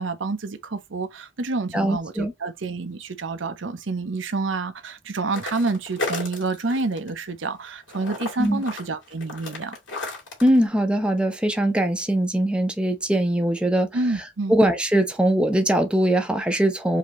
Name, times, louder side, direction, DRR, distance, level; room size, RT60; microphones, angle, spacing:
voice 1, 0.0-9.8 13.9-14.6, right 3 dB, 80° right, 0.7 m, -28 dB
voice 2, 1.7-2.3 8.4-8.6 10.4-13.9 14.5-17.0, right 1 dB, 5° right, 0.7 m, -21 dB
sound 1, 5.3-7.1 7.4-10.6, left 2 dB, 75° left, 2.6 m, -33 dB
4.9 x 2.8 x 3.0 m
head